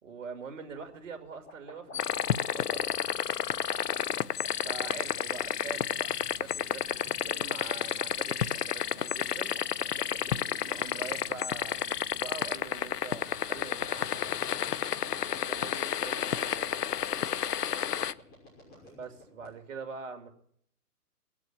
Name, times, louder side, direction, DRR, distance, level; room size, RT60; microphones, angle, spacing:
voice 1, 0.0-2.9 4.6-7.0 7.2-9.5 10.7-14.2 15.5-16.9 18.9-20.3, right 5 dB, 50° right, 6 dB, 2.6 m, -44 dB
sound 1, 0.6-19.5, left 2 dB, 20° left, 6.0 m, -51 dB
sound 2, 1.9-18.1, left 9 dB, 80° left, 0.7 m, -31 dB
voice 2, 4.9-5.5 6.9-7.1 10.1-10.5 15.1-15.4 18.6-19.1, right 1 dB, 5° right, -4 dB, 5.7 m, -58 dB
18.5 x 7.8 x 9.3 m, 0.65 s
hypercardioid pair, 140°, 46 cm